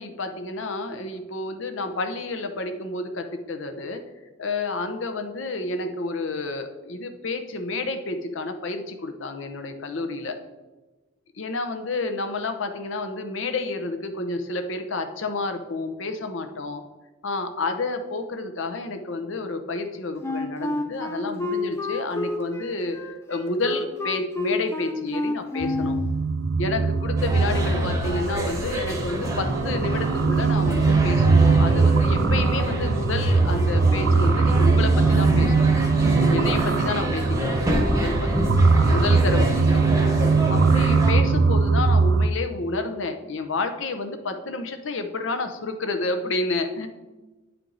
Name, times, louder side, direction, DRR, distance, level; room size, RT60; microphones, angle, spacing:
voice 1, 0.0-4.0 4.4-10.4 11.4-16.8 17.2-23.0 23.3-25.9 26.6-35.7 36.3-39.8 40.5-46.9, left 3 dB, 70° left, 7 dB, 0.7 m, -30 dB
Wind instrument woodwind instrument, 20.2-26.1, left 3 dB, 15° left, 0.5 m, -29 dB
sound 1, 25.6-42.3, right 4 dB, 70° right, 0.5 m, -21 dB
sound 2, 27.2-41.1, equal, 15° right, 1.0 m, -27 dB
9.3 x 4.5 x 3.9 m, 1.2 s
head